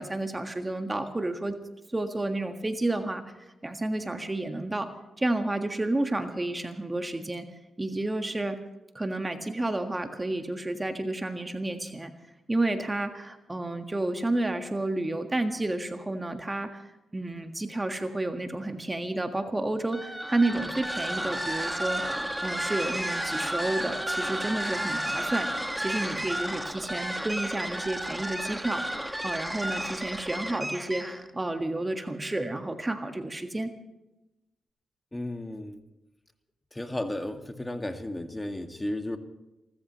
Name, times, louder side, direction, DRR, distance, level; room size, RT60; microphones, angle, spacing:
voice 1, 0.0-1.6 1.9-3.2 3.6-7.5 7.8-8.6 8.9-12.1 12.5-29.0 29.2-33.7, right 2 dB, 20° right, 6 dB, 1.6 m, -31 dB
sound 1, 19.9-31.3, right 1 dB, 5° right, 1.7 m, -32 dB
voice 2, 35.1-35.8 36.7-39.2, left 1 dB, 15° left, 6 dB, 2.0 m, -34 dB
30.0 x 14.5 x 3.1 m, 0.96 s
hypercardioid pair, 40°, 0 cm